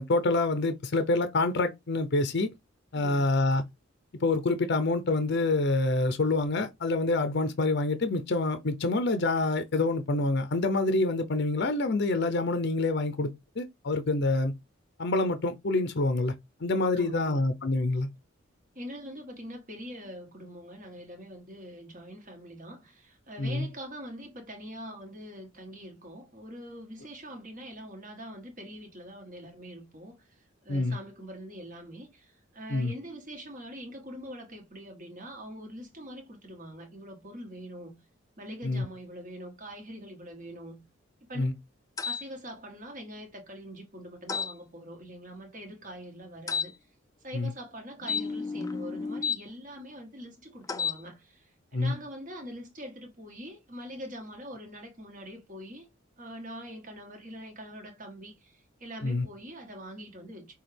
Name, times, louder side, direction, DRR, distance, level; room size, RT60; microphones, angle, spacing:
voice 1, 0.0-2.5 2.9-3.6 4.2-13.3 13.6-14.5 15.0-16.3 16.6-18.1 23.4-23.7 30.7-31.0 32.7-32.9 38.6-38.8 41.4-41.5 47.3-47.5 51.7-51.9 59.0-59.3, left 2 dB, 55° left, 0.6 m, -26 dB
voice 2, 2.9-3.4 16.9-17.7 18.7-37.9 38.4-40.8 41.3-41.5 42.0-46.7 47.2-55.9 56.2-60.5, equal, 40° right, 1.6 m, -44 dB
sound 1, 42.0-42.2 44.3-44.5 46.5-46.7 48.0-49.4 50.6-51.0, left 6 dB, 15° left, 0.3 m, -31 dB
6.0 x 2.4 x 3.4 m
head